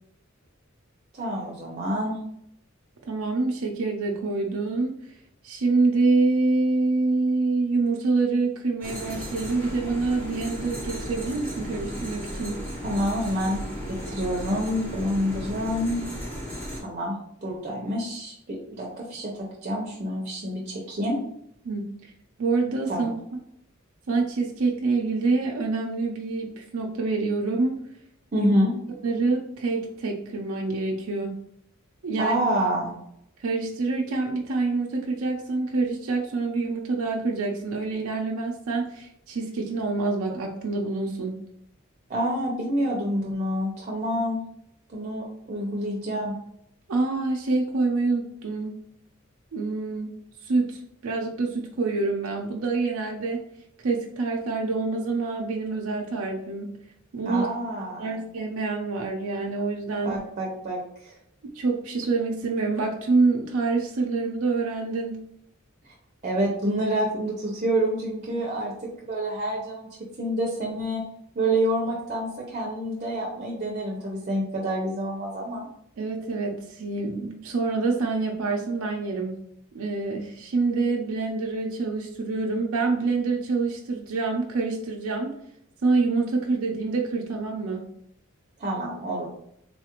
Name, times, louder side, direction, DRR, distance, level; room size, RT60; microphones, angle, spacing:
voice 1, 1.1-2.2 12.8-16.0 16.8-17.2 17.4-21.2 22.9-23.1 28.3-28.7 32.2-32.9 42.1-44.4 44.9-46.3 57.3-58.2 60.0-61.1 66.2-69.9 70.2-71.0 71.3-75.7 88.6-89.3, equal, 35° right, -2 dB, 0.6 m, -28 dB
voice 2, 3.1-5.2 5.4-12.6 21.6-22.1 22.4-23.1 24.1-27.8 28.3-28.5 29.0-31.4 32.0-32.4 33.4-41.4 46.9-48.8 49.5-53.4 53.8-56.8 57.1-57.5 58.0-60.2 61.4-65.2 76.0-79.4 79.7-85.3 85.8-87.9, right 3 dB, 85° right, 0 dB, 0.5 m, -26 dB
sound 1, 8.8-16.8, equal, 10° left, 1.0 m, -35 dB
3.7 x 2.4 x 2.9 m, 0.73 s
head